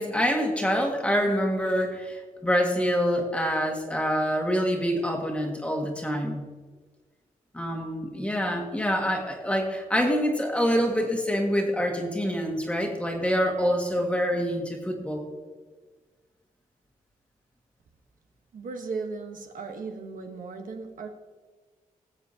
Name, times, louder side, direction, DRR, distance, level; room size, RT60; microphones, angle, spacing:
voice 1, 0.0-6.5 7.5-15.3, equal, 10° left, 1 dB, 1.7 m, -26 dB
voice 2, 18.5-21.1, right 4 dB, 65° right, 4 dB, 1.2 m, -36 dB
20.5 x 8.0 x 2.8 m, 1.4 s
wide cardioid pair, 160°, 15 cm